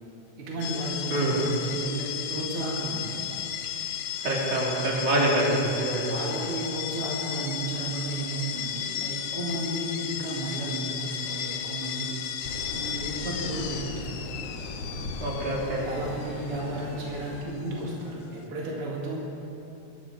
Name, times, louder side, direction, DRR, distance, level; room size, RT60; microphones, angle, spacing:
voice 1, 0.4-3.4 6.0-12.2 12.7-14.2 15.8-19.2, right 1 dB, 50° right, -3 dB, 3.0 m, -33 dB
sound 1, 0.6-18.5, left 9 dB, 70° left, 1.3 m, -35 dB
voice 2, 4.2-6.1 15.2-15.9, right 1 dB, 80° right, -4 dB, 4.1 m, -25 dB
sound 2, 12.4-17.4, left 2 dB, 55° left, 2.8 m, -38 dB
21.5 x 12.5 x 4.9 m, 2.9 s
omnidirectional pair, 3.4 m